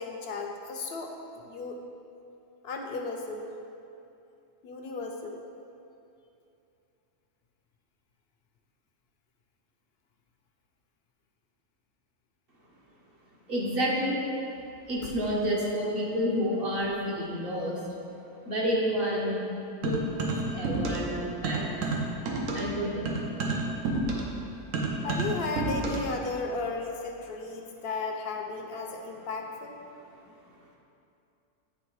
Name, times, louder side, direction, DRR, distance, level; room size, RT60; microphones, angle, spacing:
voice 1, 0.0-1.8 2.6-3.5 4.6-5.4 15.0-15.1 25.0-29.8, left 3 dB, 60° left, 2 dB, 0.8 m, -35 dB
voice 2, 13.5-14.2 14.9-17.8 18.4-19.5 19.8-20.0 20.5-21.6 22.5-23.1, equal, 50° right, -4 dB, 1.2 m, -29 dB
sound 1, 19.8-21.2 21.4-26.2, right 2 dB, 85° right, 1.2 m, -30 dB
8.9 x 3.4 x 4.6 m, 2.7 s
omnidirectional pair, 1.3 m